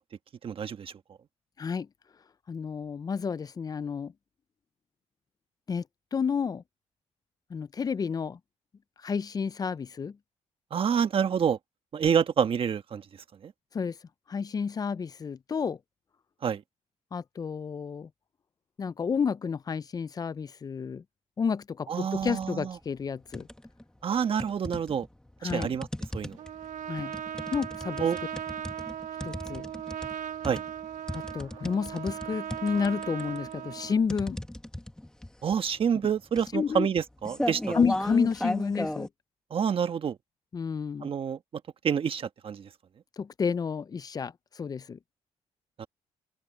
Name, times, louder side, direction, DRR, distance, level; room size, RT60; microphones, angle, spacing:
voice 1, 0.4-0.9 10.7-11.6 11.9-13.0 13.4-13.5 16.4-16.6 21.9-22.8 24.0-25.1 25.4-25.9 26.1-26.4 28.0-28.2 30.4-30.6 35.4-37.8 39.5-40.2 41.0-41.4 41.8-42.7 45.8-45.9, right 7 dB, 50° right, 1.4 m, -27 dB
voice 2, 2.5-4.1 5.7-5.8 6.1-6.6 7.5-8.4 9.0-10.2 13.7-14.0 14.3-15.8 17.1-18.1 18.8-21.0 21.4-23.5 25.4-25.7 26.9-27.1 27.5-28.1 29.2-29.7 31.1-34.4 36.5-36.9 37.7-39.1 40.5-41.1 43.2-45.0, left 6 dB, 30° left, 0.5 m, -30 dB
sound 1, 22.1-22.5 22.9-23.8 24.4-39.1, left 1 dB, 5° left, 1.8 m, -36 dB
Trumpet, 26.4-34.0, right 10 dB, 90° right, 1.4 m, -38 dB
open air
cardioid pair, 105°, 12 cm